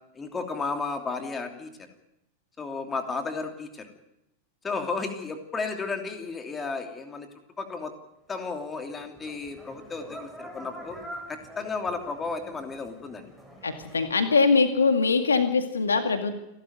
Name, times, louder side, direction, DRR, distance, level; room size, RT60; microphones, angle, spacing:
voice 1, 0.1-1.7 2.6-3.9 4.6-7.3 7.6-7.9 8.3-11.0 11.3-13.3, left 4 dB, 15° left, 5 dB, 3.0 m, -33 dB
sound 1, 8.6-14.3, equal, ahead, 7.1 m, -45 dB
voice 2, 13.6-16.4, left 4 dB, 75° left, 7 dB, 2.2 m, -22 dB
29.0 x 12.5 x 9.3 m, 0.87 s
figure-of-eight pair, 90°, 0 cm